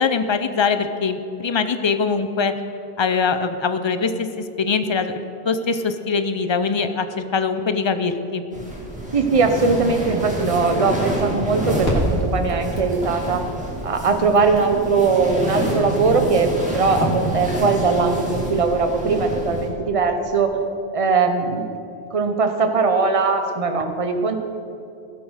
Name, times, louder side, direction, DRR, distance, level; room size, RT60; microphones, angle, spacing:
voice 1, 0.0-2.5 3.0-8.4, left 5 dB, 30° left, 9 dB, 0.6 m, -22 dB
sound 1, 8.5-19.7, right 1 dB, 5° right, 2.4 m, -27 dB
voice 2, 9.1-13.4 13.8-20.6 20.9-21.8 22.1-24.4, right 4 dB, 35° right, 6 dB, 1.0 m, -20 dB
sound 2, 11.6-17.5, equal, 65° left, 3.1 m, -32 dB
16.5 x 7.7 x 6.4 m, 2.8 s
omnidirectional pair, 1.1 m